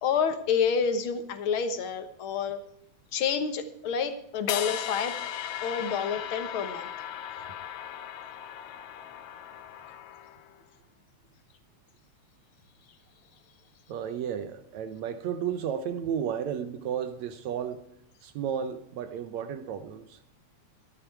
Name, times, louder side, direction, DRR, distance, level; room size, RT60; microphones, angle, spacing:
voice 1, 0.0-2.6 3.1-5.2 5.6-6.9, left 6 dB, 55° left, 1.7 m, -28 dB
sound 1, 4.5-10.6, left 10 dB, 75° left, 2.1 m, -37 dB
voice 2, 13.9-17.9 18.2-20.2, right 8 dB, 75° right, 2.1 m, -33 dB
14.0 x 13.0 x 4.6 m
omnidirectional pair, 3.4 m